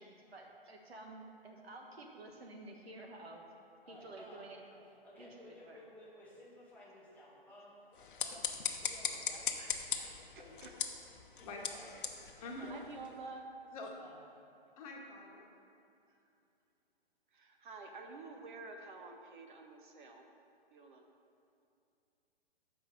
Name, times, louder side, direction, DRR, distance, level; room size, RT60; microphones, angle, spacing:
voice 1, 0.0-3.4 3.9-4.9 5.2-5.8, right 2 dB, 80° right, 1 dB, 1.3 m, -51 dB
voice 2, 3.8-4.5 5.0-8.4 8.7-9.5 10.2-10.6 11.3-12.0 12.6-12.9 14.0-14.2, left 1 dB, 5° left, -7 dB, 1.5 m, -56 dB
sound 1, 7.9-13.2, left 7 dB, 55° left, 0.8 m, -40 dB
voice 3, 10.0-10.7 12.7-13.5 17.3-20.3 20.7-21.1, right 3 dB, 55° right, 3 dB, 0.8 m, -50 dB
voice 4, 12.4-12.7 13.7-13.9 14.8-15.5, left 2 dB, 35° left, -1 dB, 1.1 m, -46 dB
6.5 x 4.9 x 6.3 m, 2.6 s
hypercardioid pair, 140°, 30 cm